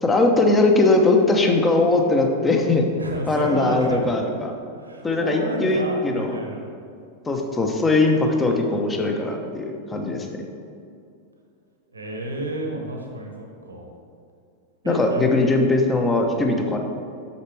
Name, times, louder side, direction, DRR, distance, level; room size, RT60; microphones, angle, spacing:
voice 1, 0.0-2.9 3.3-4.5 5.0-6.4 7.3-10.3 14.8-16.8, left 2 dB, 15° left, 2 dB, 0.9 m, -20 dB
voice 2, 3.0-4.4 4.7-6.7 11.9-13.9 14.8-15.3, right 1 dB, 75° right, 1 dB, 1.3 m, -31 dB
8.2 x 6.6 x 3.4 m, 2.5 s
figure-of-eight pair, 90°, 0 cm